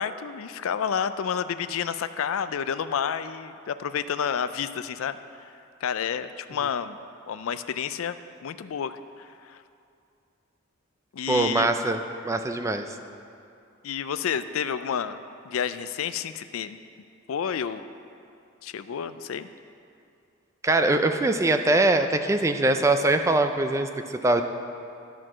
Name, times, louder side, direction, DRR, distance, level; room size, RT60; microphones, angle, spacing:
voice 1, 0.0-5.5 5.8-7.0 7.3-9.6 11.1-11.7 13.8-16.8 17.3-17.8 18.6-19.5, left 7 dB, 80° left, 12 dB, 0.4 m, -30 dB
voice 2, 11.3-13.0 20.6-24.4, right 2 dB, 15° right, 7 dB, 0.4 m, -23 dB
13.0 x 4.5 x 6.1 m, 2.5 s
head